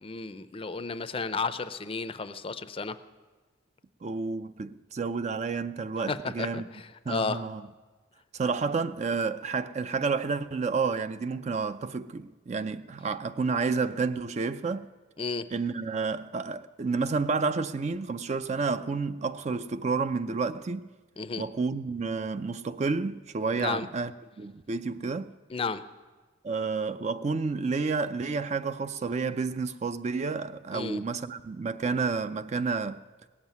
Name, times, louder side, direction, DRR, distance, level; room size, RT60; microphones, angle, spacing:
voice 1, 0.0-3.0 6.1-7.4 15.2-15.5 21.2-21.4 23.6-23.9 25.5-25.8 30.7-31.0, left 4 dB, 30° left, 0.5 m, -33 dB
voice 2, 4.0-6.7 7.1-7.7 8.3-14.9 15.5-20.9 21.4-25.3 26.4-33.0, right 4 dB, 35° right, 0.4 m, -30 dB
17.5 x 7.4 x 9.4 m
head